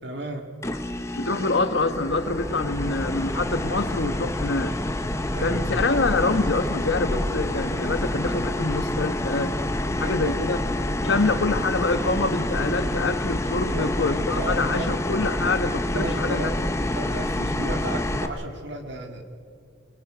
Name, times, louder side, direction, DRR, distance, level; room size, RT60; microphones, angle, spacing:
voice 1, 0.0-0.5 5.3-6.1 9.8-10.5 11.0-11.3 13.7-15.0 15.9-16.6 16.9-19.2, right 1 dB, 60° right, 2.1 m, -34 dB
sound 1, 0.6-18.3, left 1 dB, 15° left, 0.8 m, -28 dB
voice 2, 1.1-4.8 5.4-9.5 10.0-10.6 11.0-16.5, left 3 dB, 60° left, 1.2 m, -25 dB
26.0 x 22.0 x 5.1 m
head